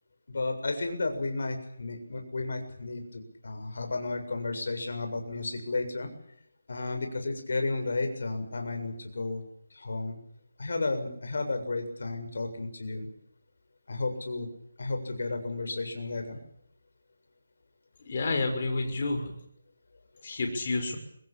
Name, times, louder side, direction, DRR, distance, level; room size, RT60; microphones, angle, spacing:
voice 1, 0.3-6.1 6.7-9.4 9.7-10.2 10.6-13.1 13.9-14.5 14.8-16.4, left 3 dB, 65° left, 6 dB, 7.2 m, -33 dB
voice 2, 18.0-19.3 20.2-21.0, left 3 dB, 40° left, 5 dB, 6.2 m, -29 dB
24.5 x 20.5 x 8.9 m, 0.70 s
figure-of-eight pair, 170°, 0 cm